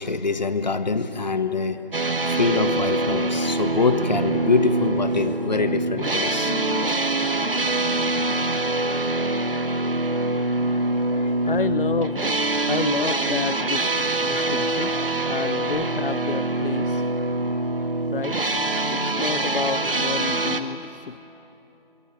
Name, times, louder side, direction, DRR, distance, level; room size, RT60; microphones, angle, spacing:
voice 1, 0.0-6.8 9.5-9.6 10.6-11.6 12.7-12.8 14.3-14.9, left 4 dB, 45° left, 10 dB, 1.4 m, -26 dB
sound 1, 1.9-20.6, right 2 dB, 65° right, 1.9 m, -24 dB
voice 2, 11.4-12.3 12.7-14.9 15.3-17.1 18.1-18.5 18.9-21.2, left 5 dB, 60° left, 17 dB, 0.6 m, -29 dB
26.0 x 23.5 x 9.2 m, 3.0 s
figure-of-eight pair, 155°, 31 cm